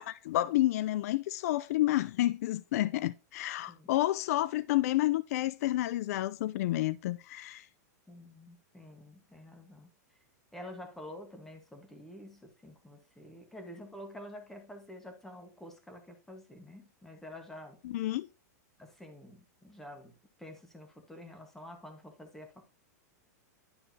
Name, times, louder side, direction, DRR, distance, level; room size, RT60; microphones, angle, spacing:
voice 1, 0.0-7.7 17.8-18.3, left 15 dB, 60° left, 0.4 m, -30 dB
voice 2, 8.1-10.2 10.5-17.8 18.8-20.1 20.4-22.7, left 1 dB, 5° left, 1.4 m, -49 dB
11.0 x 4.9 x 2.8 m
supercardioid pair, 155°, 9 cm